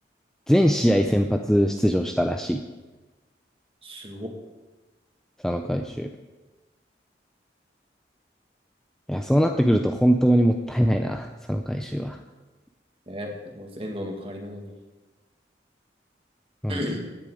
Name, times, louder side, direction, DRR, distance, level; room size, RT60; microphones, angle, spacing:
voice 1, 0.5-2.6 5.4-6.1 9.1-12.2 16.6-16.8, equal, 5° left, 4 dB, 0.5 m, -22 dB
voice 2, 3.8-4.3 13.1-13.3 13.6-14.7 16.7-17.0, equal, 30° right, 2 dB, 2.0 m, -33 dB
15.5 x 10.5 x 4.9 m, 1.2 s
head